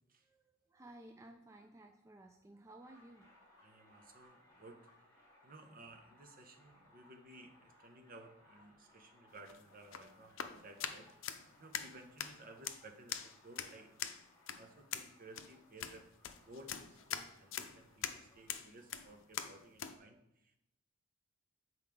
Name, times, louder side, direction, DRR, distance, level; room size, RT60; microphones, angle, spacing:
voice 1, 0.2-3.5, right 1 dB, 15° right, 4 dB, 0.3 m, -57 dB
sound 1, 2.8-19.3, left 1 dB, 15° left, 2.6 m, -67 dB
voice 2, 3.6-4.9 5.1-13.9 14.6-16.1 16.4-20.6, right 2 dB, 45° right, 5 dB, 0.9 m, -57 dB
sound 2, 9.3-20.0, left 9 dB, 70° left, 0.5 m, -44 dB
8.0 x 4.5 x 3.6 m, 0.82 s
head